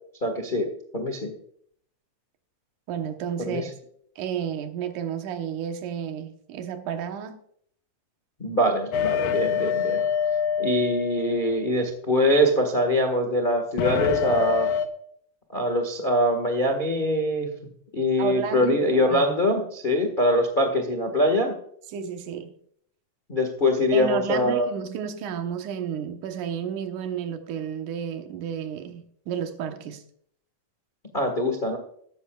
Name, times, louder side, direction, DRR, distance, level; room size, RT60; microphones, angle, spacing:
voice 1, 0.2-0.7 0.9-1.3 3.4-3.7 8.4-10.0 10.6-14.7 15.5-17.5 17.9-21.5 23.3-24.7 31.1-31.8, left 1 dB, 45° left, 0.6 m, -23 dB
voice 2, 2.9-3.7 4.2-7.4 18.2-19.4 21.9-22.5 23.9-30.0, right 8 dB, 70° right, 2.5 m, -31 dB
sound 1, 8.9-11.9 13.8-14.9, left 7 dB, 85° left, 2.7 m, -26 dB
15.5 x 13.0 x 2.4 m
omnidirectional pair, 4.0 m